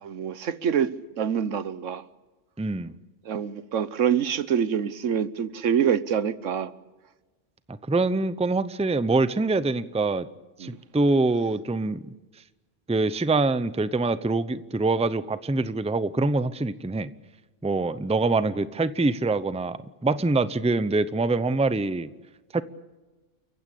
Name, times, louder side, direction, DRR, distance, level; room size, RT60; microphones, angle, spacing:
voice 1, 0.0-2.0 3.2-6.7 10.6-10.8, right 8 dB, 90° right, 1.3 m, -26 dB
voice 2, 2.6-2.9 7.9-10.3 10.6-12.1 12.9-17.1 17.6-22.1 22.5-22.6, right 3 dB, 5° right, 0.6 m, -24 dB
29.5 x 15.5 x 8.5 m
omnidirectional pair, 1.2 m